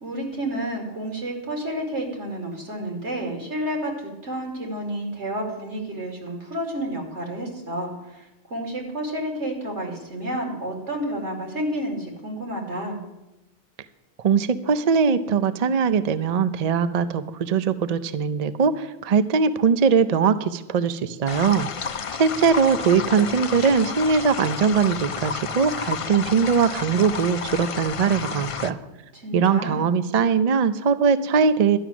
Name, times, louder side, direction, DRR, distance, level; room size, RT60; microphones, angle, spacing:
voice 1, 0.0-13.0 29.1-29.9, right 1 dB, 80° right, 0 dB, 3.0 m, -30 dB
voice 2, 14.2-21.7 22.2-28.8 29.3-31.8, right 6 dB, 50° right, 12 dB, 0.5 m, -21 dB
sound 1, 21.3-28.7, left 6 dB, 55° left, 0.3 m, -31 dB
12.0 x 6.0 x 9.2 m, 0.99 s
omnidirectional pair, 1.2 m